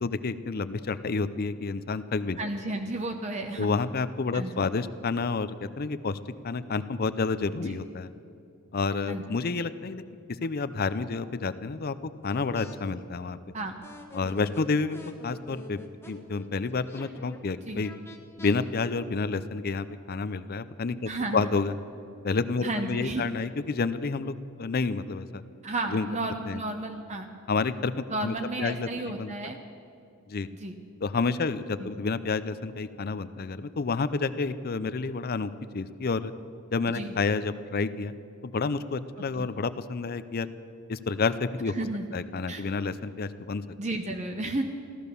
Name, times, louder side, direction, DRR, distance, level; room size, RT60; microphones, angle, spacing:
voice 1, 0.0-2.4 3.6-6.2 6.4-8.1 8.7-10.0 10.4-13.4 14.1-15.8 16.1-17.9 18.4-21.7 22.2-25.4 25.9-26.1 26.5-26.6 27.5-29.3 30.3-30.5 31.0-36.3 36.7-38.1 38.4-40.5 40.9-41.7 42.1-43.6, left 4 dB, 45° left, 14 dB, 0.5 m, -29 dB
voice 2, 2.4-3.7 4.3-4.5 7.6-7.8 9.1-9.2 13.5-13.8 17.7-17.8 21.1-21.5 22.6-23.3 25.6-27.3 28.1-29.6 30.6-30.8 31.8-31.9 36.9-37.2 39.4-39.5 41.7-42.1 42.5-42.6 43.8-44.6, right 2 dB, 30° right, 5 dB, 0.7 m, -32 dB
sound 1, 12.2-12.8 13.8-17.4 17.8-18.6, equal, 10° left, 1.2 m, -46 dB
15.5 x 12.5 x 6.8 m, 2.6 s
head